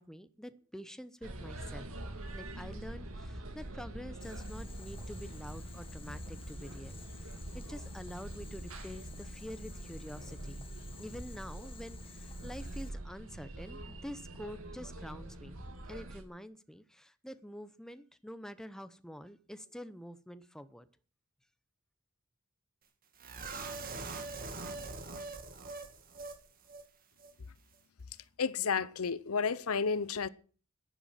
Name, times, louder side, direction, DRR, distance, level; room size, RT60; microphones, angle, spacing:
voice 1, 0.0-1.9 2.3-10.7 11.0-15.6 15.9-20.9, equal, 5° left, 0.8 m, -47 dB
sound 1, 1.2-16.2, right 1 dB, 80° right, 2.5 m, -44 dB
Boiling, 4.2-12.9, left 6 dB, 25° left, 1.7 m, -55 dB
sound 2, 23.2-26.4 26.7-26.8 27.2-27.3, right 3 dB, 40° right, 2.1 m, -42 dB
voice 2, 28.4-30.3, left 5 dB, 90° left, 0.8 m, -31 dB
11.0 x 10.5 x 8.9 m
head